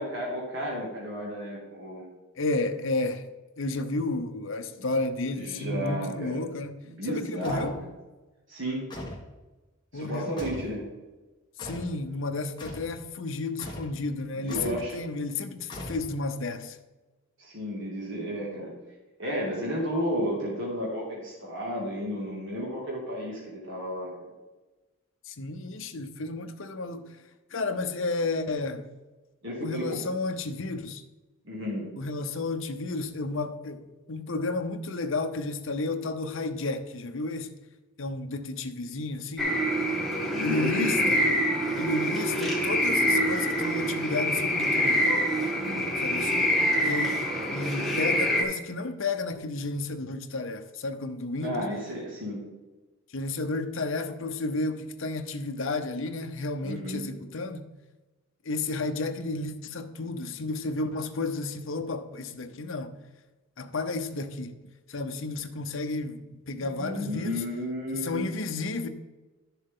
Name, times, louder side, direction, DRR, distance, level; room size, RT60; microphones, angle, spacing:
voice 1, 0.0-2.1 5.4-6.4 6.8-7.9 8.5-8.8 9.9-10.9 14.3-14.9 17.4-18.7 19.2-24.1 29.4-30.0 31.4-31.9 40.3-41.1 45.5-45.9 51.4-52.5 56.6-57.1 66.6-68.4, equal, 60° right, 2.3 m, -33 dB
voice 2, 2.4-3.2 3.6-6.8 7.1-7.7 9.9-10.4 11.6-16.8 25.3-27.0 27.5-28.8 29.6-31.0 32.0-33.8 34.1-37.5 38.0-39.5 40.4-41.2 41.8-45.1 46.0-46.4 46.8-47.2 47.5-51.6 53.1-57.7 58.4-63.0 63.6-64.5 64.9-67.4 67.9-68.9, left 3 dB, 65° left, 0.8 m, -32 dB
sound 1, 7.4-7.8 8.9-9.3 10.4-10.8 11.6-12.0 12.6-12.9 13.6-14.0 14.5-14.8 15.7-16.3, left 1 dB, 20° left, 1.5 m, -40 dB
sound 2, 39.4-48.4, equal, ahead, 1.3 m, -26 dB
11.5 x 7.0 x 3.8 m
head